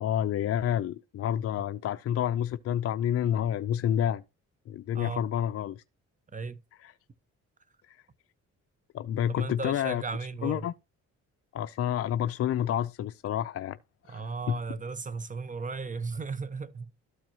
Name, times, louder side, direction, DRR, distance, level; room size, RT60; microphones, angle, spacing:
voice 1, 0.0-4.2 4.7-5.8 6.8-6.9 7.9-8.0 8.9-10.0 10.4-10.7 11.5-13.8 14.1-14.6, left 10 dB, 50° left, 0.4 m, -29 dB
voice 2, 9.3-10.7 14.1-16.9, right 4 dB, 25° right, 0.9 m, -35 dB
13.0 x 4.6 x 2.7 m
cardioid pair, 90°, 30 cm